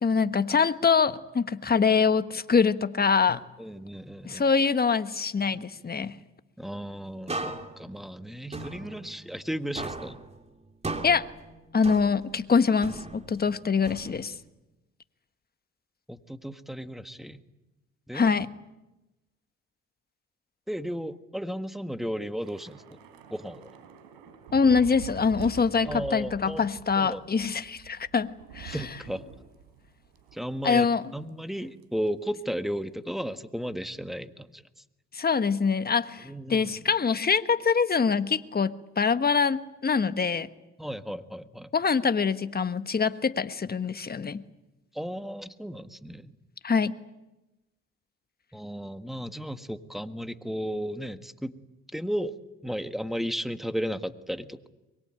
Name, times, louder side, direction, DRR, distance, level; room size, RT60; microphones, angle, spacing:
voice 1, 0.0-3.4 4.2-6.2 11.0-11.3 11.7-14.3 18.1-18.5 24.5-28.3 28.5-28.8 30.6-31.0 35.1-40.5 41.7-44.4 46.6-47.0, left 5 dB, 30° left, 11 dB, 1.4 m, -24 dB
voice 2, 3.6-4.4 6.6-10.2 16.1-17.4 18.1-18.3 20.7-22.8 23.3-23.7 25.8-26.7 27.0-27.3 28.7-29.2 30.3-30.9 31.1-34.6 36.2-36.8 40.8-41.7 44.9-46.3 48.5-51.6 51.9-52.3 52.6-54.7, equal, ahead, 10 dB, 1.6 m, -34 dB
sound 1, 7.3-9.5 9.8-12.4 12.8-14.5, right 2 dB, 20° right, 3.0 m, -38 dB
Thunder / Rain, 22.4-31.0 31.3-31.5 31.8-32.1, right 8 dB, 85° right, 4.1 m, -46 dB
23.0 x 22.5 x 9.0 m, 1.0 s
supercardioid pair, 70°, 33 cm